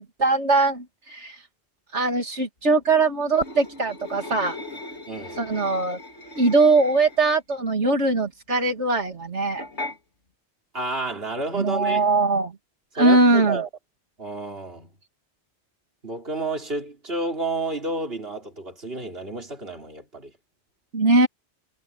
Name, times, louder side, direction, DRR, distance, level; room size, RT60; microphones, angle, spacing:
voice 1, 0.0-1.4 1.9-4.6 5.4-6.0 6.4-9.6 11.6-12.5 12.9-13.6 20.9-21.3, right 3 dB, 85° right, 2.8 m, -21 dB
sound 1, 3.3-7.5 9.6-10.0, left 2 dB, 85° left, 3.9 m, -38 dB
voice 2, 5.1-5.4 10.7-12.1 13.0-13.7 14.2-14.9 16.0-20.3, right 2 dB, 60° right, 4.4 m, -30 dB
omnidirectional pair, 1.1 m